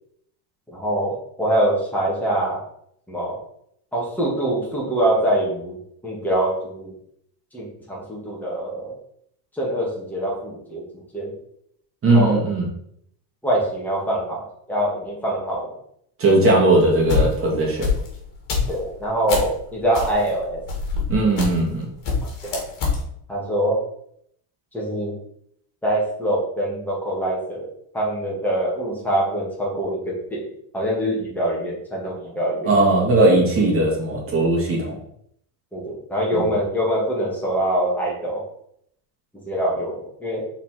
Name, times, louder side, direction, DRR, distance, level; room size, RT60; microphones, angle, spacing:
voice 1, 0.7-2.6 3.1-3.4 3.9-5.8 6.0-6.9 7.5-8.9 9.5-10.8 11.1-11.4 12.1-12.4 13.4-15.8 18.7-20.6 22.5-22.6 23.3-23.8 24.7-25.2 25.8-27.7 27.9-32.7 35.7-38.4 39.5-40.5, right 1 dB, 5° left, -5 dB, 2.2 m, -24 dB
voice 2, 12.0-12.7 16.2-17.9 21.1-21.9 32.6-35.0 36.3-36.4, right 2 dB, 25° right, -2 dB, 2.2 m, -18 dB
sound 1, 16.8-19.6 19.9-21.8 22.0-23.0, left 5 dB, 45° left, 2.4 m, -25 dB
5.8 x 4.3 x 4.5 m, 0.70 s
cardioid pair, 145°, 47 cm